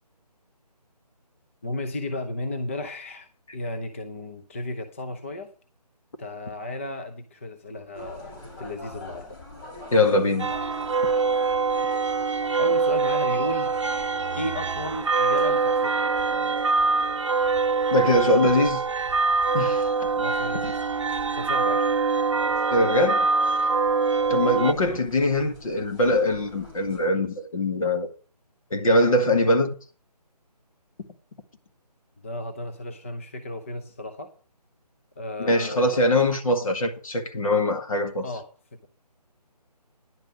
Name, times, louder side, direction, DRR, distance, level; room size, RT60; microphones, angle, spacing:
voice 1, 1.6-5.5 6.2-9.4 12.3-13.8 14.3-16.1 20.2-20.8 21.3-21.9 24.6-24.8 32.2-34.3 35.2-36.2 38.2-38.9, left 1 dB, 20° left, 0.6 m, -34 dB
sound 1, 7.9-27.1, left 2 dB, 35° left, 3.9 m, -45 dB
voice 2, 9.9-10.5 17.9-18.8 19.5-19.9 22.7-23.3 24.3-28.1 28.7-29.7 35.4-38.3, left 1 dB, 55° left, 2.0 m, -22 dB
sound 2, 10.4-24.7, right 4 dB, 45° right, 0.5 m, -24 dB
10.5 x 5.1 x 8.1 m
figure-of-eight pair, 160°, 21 cm